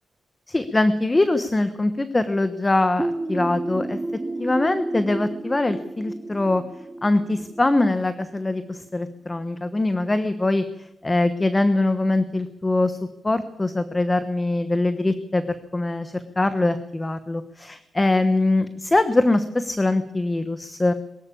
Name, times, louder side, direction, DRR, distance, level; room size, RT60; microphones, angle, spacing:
voice 1, 0.5-4.0 4.4-6.6 7.0-13.0 13.2-20.9, left 2 dB, 20° left, 11 dB, 1.2 m, -22 dB
sound 1, 3.0-8.5, right 2 dB, 15° right, 0.7 m, -31 dB
22.5 x 14.0 x 8.7 m, 0.88 s
wide cardioid pair, 120°, 0 cm